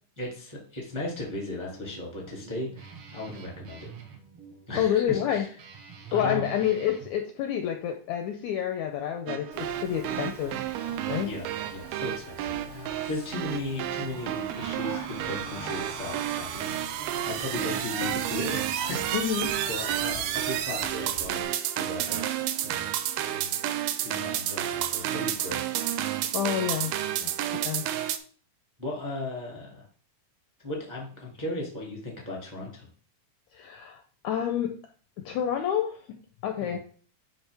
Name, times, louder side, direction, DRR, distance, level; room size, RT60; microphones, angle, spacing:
voice 1, 0.2-3.9 4.7-5.5 6.1-6.5 10.5-10.6 11.1-19.4 19.7-22.3 22.6-23.5 24.0-25.6 27.1-27.7 28.8-29.9 30.6-32.9 36.6-36.8, left 2 dB, 15° right, -2 dB, 1.0 m, -37 dB
Guitar, 1.3-7.1, right 6 dB, 65° right, 1.5 m, -47 dB
voice 2, 4.7-5.5 6.1-10.6 11.1-11.3 19.1-19.6 26.3-26.9 27.6-27.8 33.5-34.8 35.2-36.8, left 9 dB, 80° left, 6 dB, 1.7 m, -28 dB
sound 1, 9.3-28.2, right 12 dB, 85° right, 2.2 m, -31 dB
Speech, 9.5-21.4, left 3 dB, 50° left, 0.8 m, -46 dB
10.0 x 3.5 x 3.4 m, 0.43 s
omnidirectional pair, 3.8 m